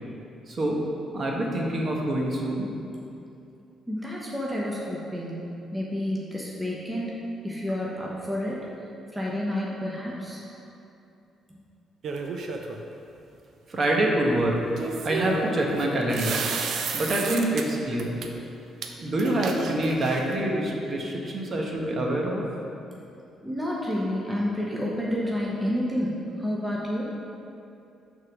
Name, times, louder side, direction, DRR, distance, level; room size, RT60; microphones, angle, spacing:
voice 1, 0.5-0.8 1.1-2.7 13.7-14.6 15.0-16.4 16.9-18.2 19.0-22.4, right 1 dB, 45° right, -1 dB, 1.1 m, -26 dB
voice 2, 3.9-5.4 5.7-8.6 9.1-10.4 23.4-27.0, left 1 dB, 5° right, -5 dB, 1.0 m, -29 dB
sound 1, 12.0-12.8 14.8-17.6 18.0-18.3 18.8-18.9 19.2-20.4, right 4 dB, 70° right, 0.5 m, -32 dB
6.4 x 3.8 x 6.0 m, 2.7 s
cardioid pair, 90°, 0 cm